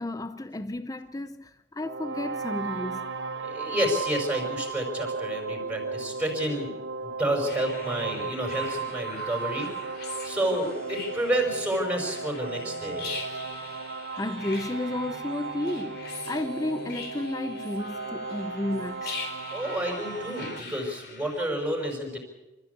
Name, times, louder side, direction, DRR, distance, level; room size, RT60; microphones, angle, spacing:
voice 1, 0.0-3.1 14.2-16.0 16.3-19.2, left 1 dB, 20° left, 0.7 m, -32 dB
sound 1, 1.8-20.6, right 4 dB, 80° right, 1.2 m, -35 dB
voice 2, 3.4-6.7 7.0-9.7 10.2-13.1 19.5-22.2, equal, 10° right, 5.6 m, -30 dB
sound 2, 7.5-21.5, left 4 dB, 60° left, 4.5 m, -42 dB
26.0 x 14.5 x 8.4 m
head